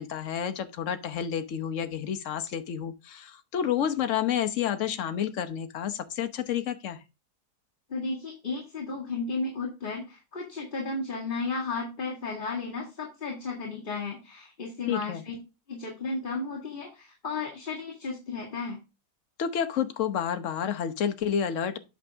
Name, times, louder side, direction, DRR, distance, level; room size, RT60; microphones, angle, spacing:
voice 1, 0.0-7.0 14.9-15.2 19.4-21.8, left 8 dB, 55° left, 1.2 m, -30 dB
voice 2, 7.9-15.3 15.7-18.8, left 3 dB, 30° left, 2.1 m, -34 dB
8.3 x 6.2 x 3.5 m
omnidirectional pair, 1.7 m